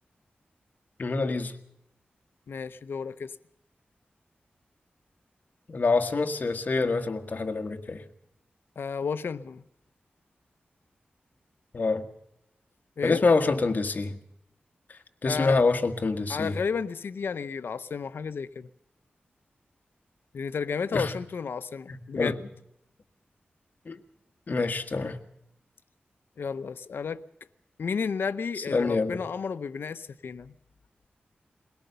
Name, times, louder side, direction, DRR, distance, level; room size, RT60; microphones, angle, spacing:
voice 1, 1.0-1.5 5.7-8.0 11.7-12.1 13.0-14.2 15.2-16.6 20.9-21.1 21.9-22.4 23.8-24.0 24.5-25.2 28.7-29.2, left 3 dB, 50° left, 1.6 m, -26 dB
voice 2, 2.5-3.4 8.8-9.6 13.0-13.2 15.3-15.6 16.3-18.7 20.3-22.4 26.4-27.2 27.8-30.5, left 5 dB, 90° left, 0.7 m, -32 dB
21.5 x 18.0 x 6.8 m
wide cardioid pair, 130°, 4 cm